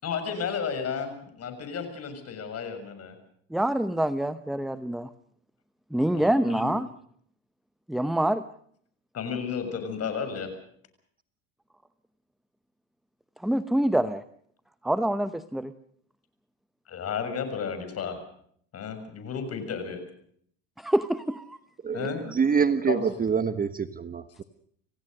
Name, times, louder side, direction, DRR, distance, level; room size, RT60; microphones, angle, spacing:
voice 1, 0.0-3.1 6.1-6.7 9.1-10.5 16.9-18.2 18.7-20.0 21.9-22.2 22.6-23.0, left 6 dB, 40° left, 8 dB, 6.6 m, -33 dB
voice 2, 3.5-5.1 5.9-6.9 7.9-8.4 13.4-14.2 14.8-15.7 20.8-21.6, right 1 dB, ahead, 12 dB, 0.8 m, -26 dB
voice 3, 21.8-24.4, right 6 dB, 20° right, 11 dB, 1.2 m, -26 dB
27.0 x 16.5 x 6.5 m, 0.63 s
supercardioid pair, 100°, 39 cm